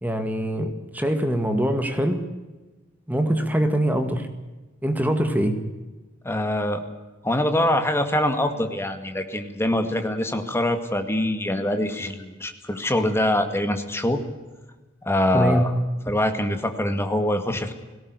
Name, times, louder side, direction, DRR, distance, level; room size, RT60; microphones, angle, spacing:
voice 1, 0.0-2.2 3.1-4.3 4.8-5.6 15.3-15.7, right 1 dB, 10° right, 7 dB, 1.9 m, -23 dB
voice 2, 6.2-6.8 7.2-14.2 15.0-15.7 16.1-17.7, left 1 dB, 15° left, 6 dB, 2.1 m, -24 dB
18.0 x 17.0 x 9.7 m, 1.2 s
head